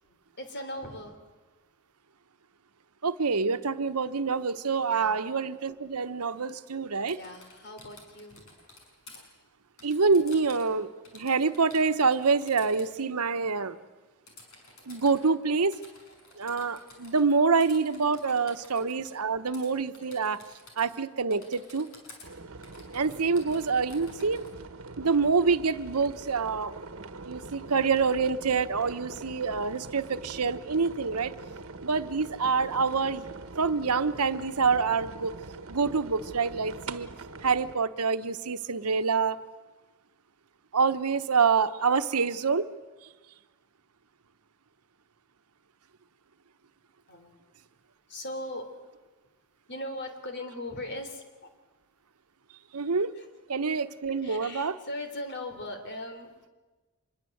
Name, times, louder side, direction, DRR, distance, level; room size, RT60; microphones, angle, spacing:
voice 1, 0.1-1.2 4.9-5.1 7.2-8.5 9.1-9.3 18.3-18.4 47.1-47.3 48.1-48.7 49.7-51.5 53.2-53.3 54.2-56.3, left 1 dB, 50° left, 7 dB, 3.3 m, -39 dB
voice 2, 3.0-7.2 9.8-13.8 14.9-15.8 16.4-20.4 20.8-21.9 22.9-24.4 25.0-26.7 27.2-31.3 31.8-33.3 33.6-35.3 35.7-37.1 37.4-39.4 40.7-42.7 52.7-53.1 53.5-54.8, right 5 dB, 90° right, 11 dB, 1.0 m, -26 dB
Typing, 6.9-9.2 9.8-10.7 11.0-12.9 14.3-15.2 15.7-17.3 17.6-19.2 19.5-19.7 19.9-21.0 21.3-22.3 22.6-24.5, left 3 dB, 65° left, 6.3 m, -52 dB
sound 1, 22.2-37.7, right 3 dB, 65° right, 1.4 m, -43 dB
26.0 x 21.5 x 7.9 m, 1.2 s
head